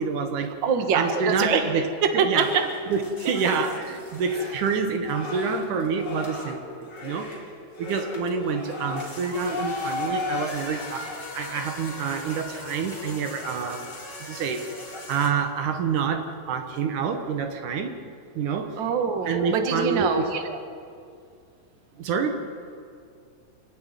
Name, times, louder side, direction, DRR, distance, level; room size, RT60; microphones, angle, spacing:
voice 1, 0.0-0.5 0.9-2.5 2.9-7.3 7.8-13.9 14.2-14.8 15.1-17.9 18.4-18.8 19.3-20.6 22.0-22.4, right 5 dB, 85° right, 6 dB, 2.9 m, -27 dB
voice 2, 0.6-1.7 2.0-2.7 18.8-20.3, right 6 dB, 45° right, 5 dB, 1.9 m, -24 dB
sound 1, 2.4-15.3, left 2 dB, 35° left, 3.4 m, -36 dB
26.0 x 12.0 x 9.3 m, 2.3 s
omnidirectional pair, 3.5 m